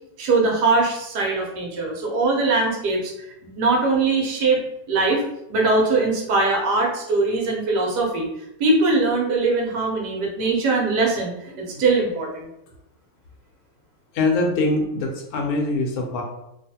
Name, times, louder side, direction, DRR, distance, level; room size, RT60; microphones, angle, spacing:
voice 1, 0.2-4.6 4.9-5.2 5.5-8.3 8.6-12.5, right 3 dB, 80° right, -1 dB, 1.4 m, -21 dB
voice 2, 14.1-16.2, left 2 dB, 70° left, 1 dB, 1.0 m, -23 dB
3.0 x 2.4 x 2.8 m, 0.84 s
omnidirectional pair, 1.8 m